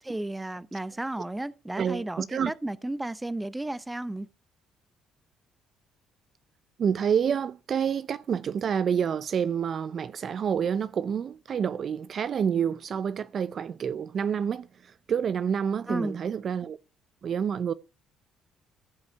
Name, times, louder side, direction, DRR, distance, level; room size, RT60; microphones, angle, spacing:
voice 1, 0.0-4.3 15.9-16.2, right 1 dB, 10° right, 0.8 m, -33 dB
voice 2, 1.8-2.5 6.8-14.7 15.1-16.8 17.2-17.7, right 7 dB, 50° right, 0.6 m, -28 dB
15.5 x 5.5 x 8.1 m
cardioid pair, 90°, 0 cm